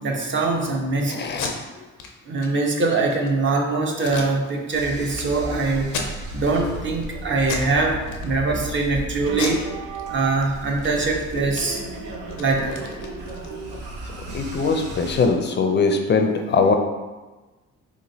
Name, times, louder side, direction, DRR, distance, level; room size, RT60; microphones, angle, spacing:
voice 1, 0.0-1.3 2.3-5.9 6.3-9.6 10.1-12.8, right 3 dB, 40° right, 1 dB, 0.7 m, -23 dB
voice 2, 1.1-1.5 14.3-16.8, left 4 dB, 35° left, 5 dB, 0.4 m, -21 dB
Packing tape duct tape, 1.2-1.5 2.0-2.1 2.4-2.5 2.9-3.3 4.0-4.8 5.1-5.2 5.8-6.5 6.9-7.1 7.4-7.7 8.0-8.7 9.3-10.4 10.7-10.9 11.2-13.8, left 5 dB, 90° left, 0.6 m, -34 dB
sound 1, 4.7-15.3, right 2 dB, 85° right, 0.7 m, -34 dB
3.6 x 3.0 x 2.7 m, 1.2 s
cardioid pair, 90°, 30 cm